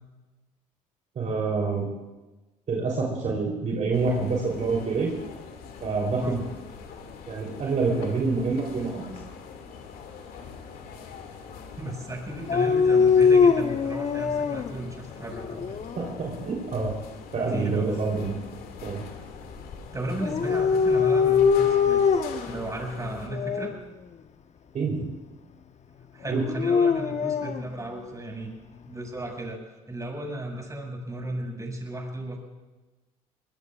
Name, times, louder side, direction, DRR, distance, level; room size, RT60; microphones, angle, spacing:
voice 1, 1.2-1.9 2.7-5.2 5.8-6.4 7.3-9.1 16.0-16.9 17.3-18.3 18.8-19.0 24.7-25.1 26.3-26.4, right 4 dB, 45° right, -2 dB, 3.6 m, -27 dB
sound 1, 3.9-23.3, left 5 dB, 65° left, 2.3 m, -43 dB
voice 2, 11.8-15.7 17.5-18.0 19.9-23.7 26.1-28.5 28.9-29.6 29.9-32.4, right 1 dB, 20° right, 1 dB, 5.9 m, -35 dB
Dog, 12.5-14.7 15.3-16.1 20.2-22.5 23.3-23.7 26.3-27.6, left 6 dB, 40° left, 1.0 m, -22 dB
22.5 x 20.5 x 2.5 m, 1.1 s
hypercardioid pair, 65°, 17 cm